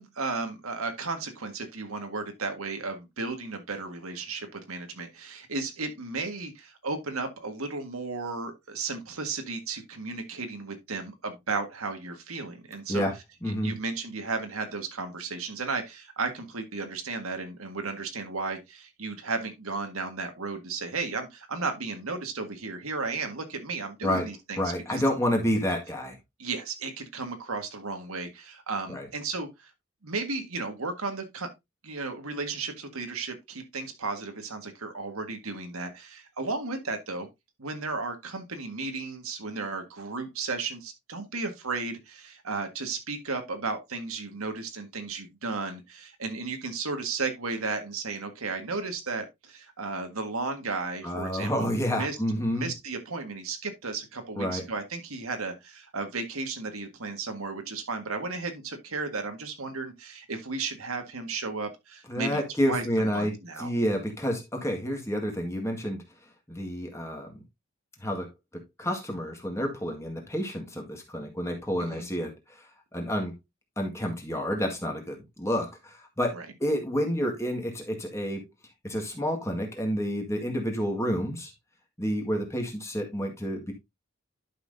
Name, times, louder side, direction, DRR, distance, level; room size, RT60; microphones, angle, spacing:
voice 1, 0.0-13.1 13.4-24.6 24.9-25.0 26.4-29.7 30.0-31.5 31.8-37.3 37.6-52.2 52.6-62.4 62.7-63.7 71.9-72.1 76.3-76.5, right 3 dB, 90° right, 1.8 m, -34 dB
voice 2, 13.4-13.7 24.0-24.3 24.6-26.2 28.9-29.1 51.0-52.7 54.4-54.6 62.1-66.0 66.5-67.3 68.0-73.3 73.8-78.5 78.8-81.5 82.0-83.7, equal, 15° left, 1.9 m, -29 dB
11.0 x 5.9 x 2.7 m
head